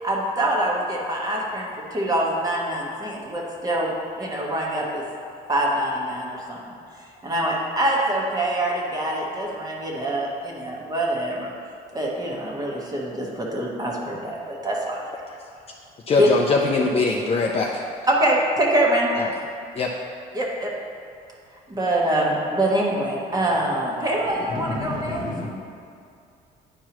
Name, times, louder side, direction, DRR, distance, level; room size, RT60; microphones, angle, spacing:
voice 1, 0.0-5.0 5.5-6.6 7.2-11.5 11.9-15.0 16.2-16.3 18.1-19.1 20.3-20.7 21.7-25.2, right 1 dB, 20° right, -3 dB, 1.2 m, -24 dB
voice 2, 16.1-17.8 19.2-19.3 19.7-19.9, left 3 dB, 35° left, -1 dB, 0.5 m, -22 dB
voice 3, 24.7-25.5, left 2 dB, 55° left, 0 dB, 1.0 m, -30 dB
10.0 x 4.5 x 3.0 m, 2.4 s
cardioid pair, 110°, 17 cm